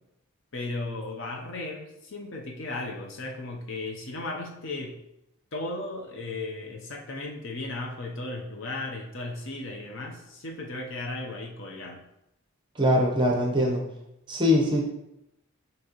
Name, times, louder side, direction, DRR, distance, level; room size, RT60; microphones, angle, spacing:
voice 1, 0.5-4.9 5.5-12.0, left 2 dB, 55° left, 1 dB, 0.7 m, -35 dB
voice 2, 12.8-13.8 14.3-14.8, left 1 dB, 20° right, -1 dB, 0.7 m, -22 dB
6.2 x 2.9 x 2.9 m, 0.84 s
head